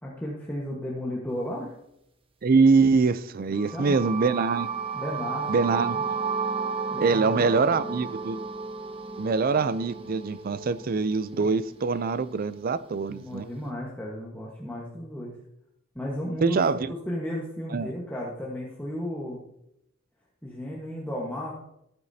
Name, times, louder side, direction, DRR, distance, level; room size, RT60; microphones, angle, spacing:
voice 1, 0.0-1.8 3.7-4.1 4.9-6.0 6.9-8.0 13.1-15.4 15.9-19.4 20.4-21.5, equal, 10° left, 1.3 m, -34 dB
voice 2, 2.4-4.7 5.5-6.0 7.0-8.4 9.2-13.4 16.4-16.9 17.7-17.9, right 4 dB, 45° right, 0.4 m, -24 dB
sound 1, 3.6-11.5, right 5 dB, 25° right, 0.9 m, -33 dB
14.0 x 8.9 x 2.8 m
head